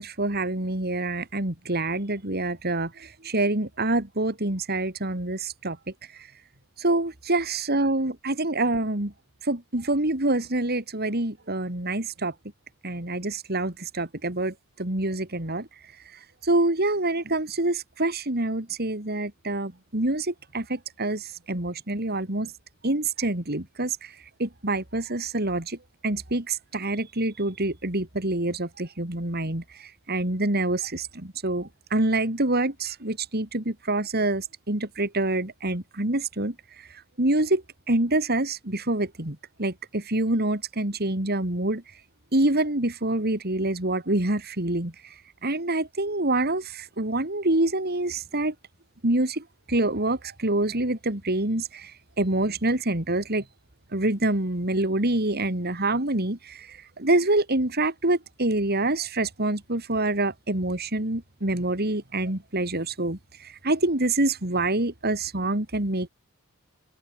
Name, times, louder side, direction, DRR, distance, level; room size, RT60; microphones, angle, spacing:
voice 1, 0.0-5.8 6.8-9.1 9.5-12.3 12.8-15.7 16.4-22.5 22.8-24.1 24.4-25.8 26.0-29.6 30.1-36.5 37.2-41.8 42.3-44.9 45.4-48.5 49.0-51.9 52.2-53.4 53.9-63.2 63.6-66.1, right 2 dB, 45° right, 3.3 m, -26 dB
open air
head